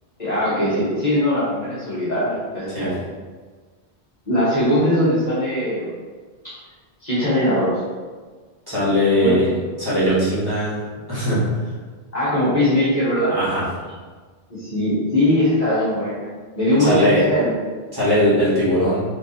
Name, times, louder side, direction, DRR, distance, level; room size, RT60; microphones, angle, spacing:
voice 1, 0.2-3.0 4.3-5.9 7.0-7.7 9.2-9.4 12.1-13.4 14.5-16.3 16.6-17.6, left 1 dB, 40° left, -10 dB, 1.2 m, -20 dB
voice 2, 8.7-9.5 9.8-10.8 11.1-11.4 13.3-13.6 16.8-17.2 17.9-19.0, equal, 20° right, -12 dB, 1.3 m, -19 dB
4.4 x 2.8 x 2.7 m, 1.4 s
omnidirectional pair, 1.1 m